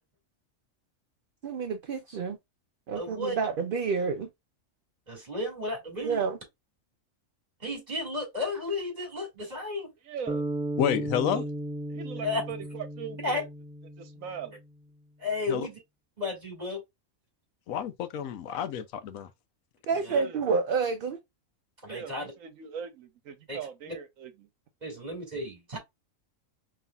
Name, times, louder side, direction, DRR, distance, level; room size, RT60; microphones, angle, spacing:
voice 1, 1.4-2.4 2.9-4.3 6.0-6.4 19.9-21.2, right 5 dB, 55° right, 0.6 m, -29 dB
voice 2, 3.0-3.4 5.1-6.2 7.6-9.9 12.2-12.4 13.2-13.4 15.2-15.7 16.2-16.8 19.9-20.2 21.8-22.3 23.5-23.6 23.9-24.0 24.8-25.8, left 2 dB, 30° right, 2.4 m, -33 dB
voice 3, 10.0-10.4 11.3-11.5 11.9-13.5 13.8-14.6 20.1-20.4 21.9-24.5, right 7 dB, 80° right, 1.2 m, -40 dB
sound 1, 10.3-14.5, right 1 dB, 10° right, 0.3 m, -35 dB
voice 4, 10.8-11.4 15.5-15.7 17.7-19.3, left 9 dB, 85° left, 1.0 m, -29 dB
5.3 x 3.2 x 2.3 m
omnidirectional pair, 1.4 m